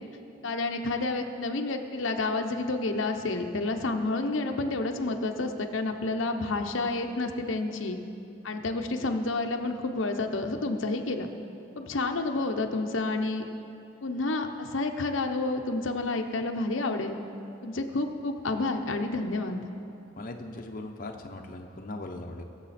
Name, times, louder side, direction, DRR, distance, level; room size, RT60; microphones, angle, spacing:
voice 1, 0.4-8.0 8.4-11.3 11.8-13.4 14.0-17.2 17.6-19.6, left 2 dB, 85° left, 4 dB, 0.8 m, -29 dB
voice 2, 20.2-22.4, left 2 dB, 45° left, 3 dB, 0.8 m, -39 dB
22.0 x 7.5 x 4.2 m, 2.7 s
head